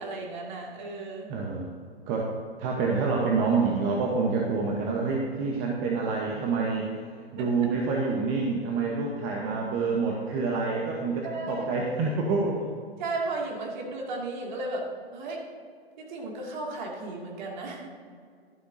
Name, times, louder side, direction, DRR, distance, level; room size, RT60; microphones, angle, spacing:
voice 1, 0.0-1.3 7.4-7.5 11.2-11.6 13.0-14.9 15.1-15.4 16.0-17.9, right 2 dB, 45° right, -1 dB, 2.4 m, -34 dB
voice 2, 1.3-1.7 2.1-2.3 2.6-6.9 7.3-12.7, right 4 dB, 30° right, -1 dB, 1.1 m, -27 dB
12.0 x 11.5 x 2.7 m, 2.1 s
figure-of-eight pair, 115°, 31 cm